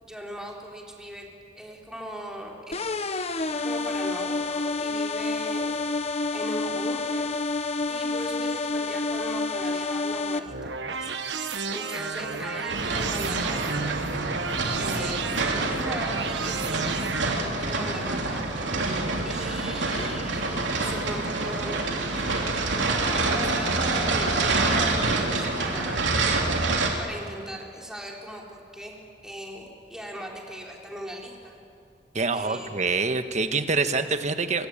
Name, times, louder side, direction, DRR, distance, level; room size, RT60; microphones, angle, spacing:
voice 1, 0.0-1.3 1.6-2.8 3.5-5.7 6.3-7.3 7.9-14.0 14.8-18.5 19.2-21.8 22.1-26.2 26.8-29.0 29.2-31.6 32.3-32.8, equal, 5° right, -2 dB, 4.0 m, -39 dB
sound 1, 2.7-10.4, left 3 dB, 35° left, 1.0 m, -28 dB
sound 2, 10.4-17.3, right 5 dB, 75° right, 1.3 m, -32 dB
sound 3, 12.7-26.9, right 3 dB, 90° right, 3.1 m, -27 dB
voice 2, 32.1-34.7, right 4 dB, 40° right, 9 dB, 1.4 m, -25 dB
25.5 x 24.0 x 8.8 m, 2.4 s
head